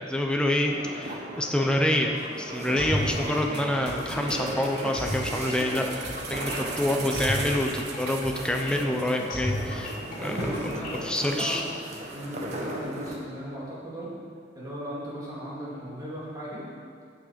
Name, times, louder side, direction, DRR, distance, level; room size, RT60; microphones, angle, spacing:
voice 1, 0.0-5.9 6.3-9.9 10.2-10.4 11.0-11.6, left 1 dB, 5° left, 1 dB, 0.7 m, -27 dB
sound 1, 0.7-13.2, right 1 dB, 40° right, 1.4 m, -37 dB
sound 2, 2.8-11.4, left 1 dB, 50° left, 2.3 m, -34 dB
sound 3, 3.5-9.3 9.6-9.7 10.1-10.2 10.5-10.7 11.2-12.0 12.5-12.6, right 4 dB, 60° right, 1.2 m, -40 dB
voice 2, 10.1-11.6 12.1-14.1 14.5-16.7, equal, 20° right, -8 dB, 3.1 m, -37 dB
16.5 x 6.1 x 5.2 m, 2.2 s
head